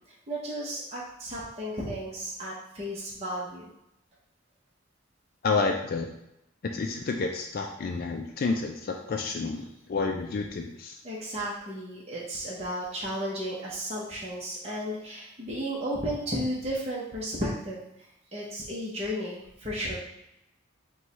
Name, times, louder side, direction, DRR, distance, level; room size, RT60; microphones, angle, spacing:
voice 1, 0.3-3.7 11.0-17.8 18.3-20.0, equal, 30° right, -5 dB, 0.8 m, -33 dB
voice 2, 5.4-6.1 6.7-11.0, left 4 dB, 50° left, 3 dB, 0.4 m, -30 dB
4.6 x 2.3 x 4.0 m, 0.82 s
head